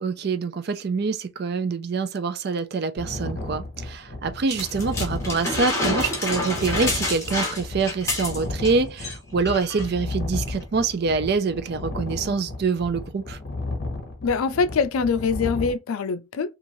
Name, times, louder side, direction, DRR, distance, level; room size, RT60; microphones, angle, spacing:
voice 1, 0.0-13.4, right 4 dB, 50° right, 0.4 m, -25 dB
sound 1, 3.0-15.7, left 2 dB, 50° left, 0.7 m, -34 dB
sound 2, 4.5-8.7 9.0-9.2 9.5-9.9 10.6-10.7, left 2 dB, 15° left, 0.9 m, -28 dB
voice 2, 14.2-16.6, left 5 dB, 85° left, 0.4 m, -24 dB
3.0 x 2.4 x 2.6 m
head